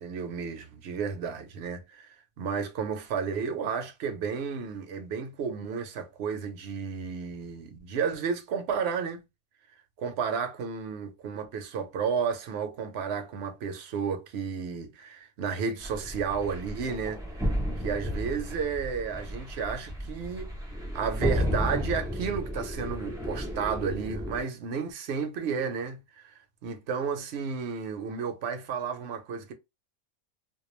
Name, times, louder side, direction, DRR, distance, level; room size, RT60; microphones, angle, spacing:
voice 1, 0.0-2.1 2.4-9.2 10.0-17.5 17.8-20.5 20.9-26.3 26.6-29.5, right 6 dB, 65° right, 0.7 m, -32 dB
sound 1, 15.8-24.4, equal, 5° right, 0.4 m, -33 dB
2.3 x 2.2 x 3.0 m
omnidirectional pair, 1.4 m